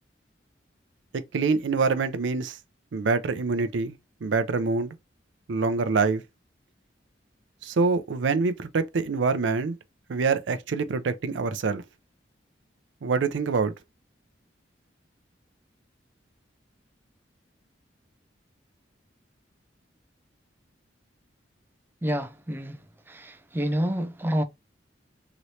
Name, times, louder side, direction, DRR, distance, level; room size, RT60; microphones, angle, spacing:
voice 1, 1.3-2.6 2.9-5.0 5.5-6.2 7.6-9.7 10.1-11.8 13.0-13.7, right 4 dB, 90° right, 0.5 m, -25 dB
voice 2, 22.0-22.8 23.1-24.4, equal, 10° right, 0.4 m, -28 dB
3.1 x 3.0 x 2.7 m
head